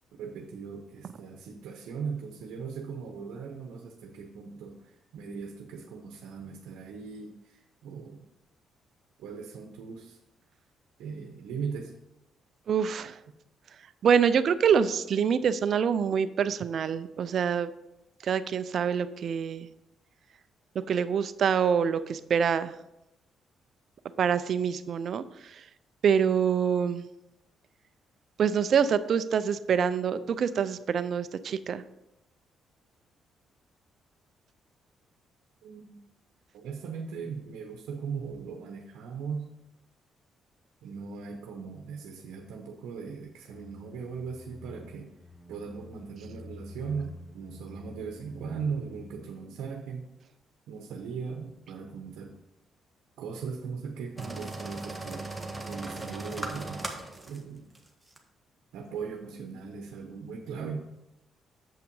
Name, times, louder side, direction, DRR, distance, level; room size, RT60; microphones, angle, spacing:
voice 1, 0.2-8.3 9.2-10.2 11.0-11.9 35.6-36.0 36.5-39.5 40.8-45.1 45.5-50.1 50.7-52.4 53.2-55.3 55.7-56.8 57.3-57.7 58.7-60.8, right 5 dB, 85° right, 3 dB, 0.9 m, -38 dB
voice 2, 12.7-13.2 14.0-17.7 18.2-19.7 20.9-22.7 24.2-25.6 26.0-27.0 28.4-31.8, right 7 dB, 60° right, 13 dB, 0.5 m, -26 dB
sound 1, 43.5-49.5, left 2 dB, 10° left, 0.7 m, -48 dB
sound 2, 54.2-57.4 57.8-57.9 58.1-58.2, right 2 dB, 5° right, 1.3 m, -37 dB
7.5 x 5.6 x 5.4 m, 0.91 s
cardioid pair, 90°, 0 cm